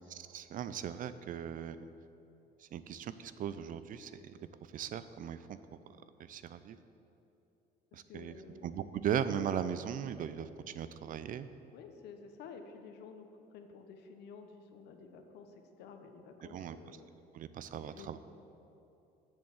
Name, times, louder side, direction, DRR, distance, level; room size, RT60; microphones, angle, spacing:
voice 1, 0.3-1.9 2.6-4.4 4.7-5.4 6.2-6.8 7.9-8.3 8.6-11.5 16.4-16.8 17.3-18.2, right 9 dB, 55° right, 13 dB, 0.5 m, -38 dB
voice 2, 7.9-8.7 11.7-17.1 17.8-18.2, left 5 dB, 80° left, 6 dB, 1.0 m, -52 dB
8.0 x 7.2 x 7.2 m, 2.9 s
cardioid pair, 110°, 17 cm